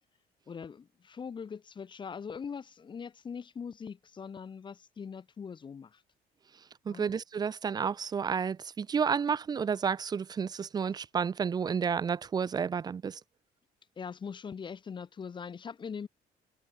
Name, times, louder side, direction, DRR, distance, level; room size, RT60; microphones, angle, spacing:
voice 1, 0.5-6.0 6.9-7.1 14.0-16.1, left 6 dB, 30° left, 0.6 m, -41 dB
voice 2, 6.9-13.2, right 6 dB, 25° right, 0.3 m, -31 dB
cardioid pair, 110°, 17 cm